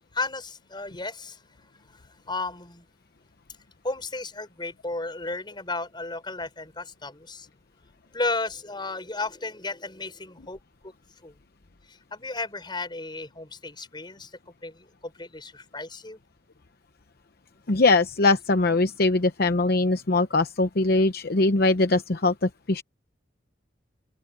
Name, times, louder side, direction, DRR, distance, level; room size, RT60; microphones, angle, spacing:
voice 1, 0.1-1.4 2.3-2.8 3.8-7.5 8.1-10.6 11.2-11.3 12.1-14.3 14.6-16.2, left 3 dB, 25° left, 5.7 m, -33 dB
voice 2, 17.7-22.8, left 2 dB, 55° left, 0.8 m, -22 dB
open air
head